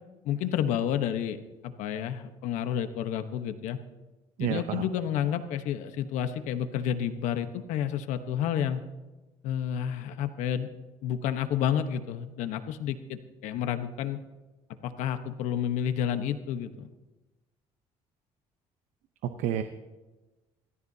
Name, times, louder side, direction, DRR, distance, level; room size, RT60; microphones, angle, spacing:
voice 1, 0.2-3.8 4.4-8.8 9.4-10.7 11.0-14.2 14.8-16.9, left 9 dB, 85° left, 9 dB, 1.1 m, -30 dB
voice 2, 4.4-4.9 19.4-19.6, right 10 dB, 80° right, 8 dB, 0.8 m, -29 dB
27.0 x 14.0 x 2.8 m, 1.1 s
cardioid pair, 120°, 12 cm